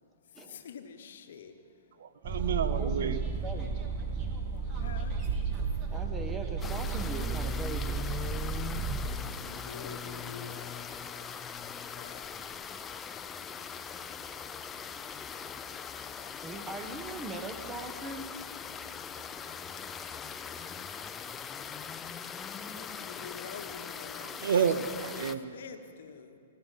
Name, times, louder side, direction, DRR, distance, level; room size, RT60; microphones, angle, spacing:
voice 1, 0.4-1.5 4.7-5.2 9.0-11.4 11.9-12.3 22.8-24.4 24.6-24.8 25.5-26.4, left 6 dB, 65° left, 8 dB, 1.0 m, -47 dB
voice 2, 2.0-3.2 24.2-25.6, right 7 dB, 65° right, 12 dB, 0.7 m, -30 dB
sound 1, 2.2-9.1, right 5 dB, 35° right, 2.1 m, -33 dB
voice 3, 2.7-3.8 5.9-8.0 16.4-18.2, right 2 dB, 15° right, 6 dB, 1.3 m, -40 dB
sound 2, 6.6-25.4, left 7 dB, 20° left, 0.5 m, -41 dB
17.5 x 14.0 x 4.2 m, 2.3 s
hypercardioid pair, 120°, 0 cm